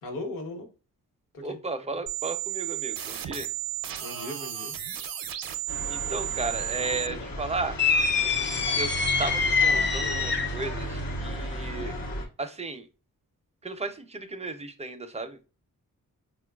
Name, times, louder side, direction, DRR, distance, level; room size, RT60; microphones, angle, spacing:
voice 1, 0.0-0.7 1.3-1.6 4.0-4.8, left 2 dB, 70° left, 3 dB, 1.0 m, -37 dB
voice 2, 1.4-3.5 5.9-7.8 8.8-8.9 9.2-11.9 12.4-12.9 13.6-15.4, right 3 dB, 20° right, 9 dB, 0.4 m, -34 dB
sound 1, 2.1-7.1, right 14 dB, 80° right, 0.5 m, -33 dB
sound 2, 5.7-12.3, equal, 90° left, 1.0 m, -35 dB
sound 3, 7.8-10.7, left 5 dB, 35° left, 0.5 m, -25 dB
4.2 x 2.3 x 2.2 m, 0.33 s
wide cardioid pair, 105°, 34 cm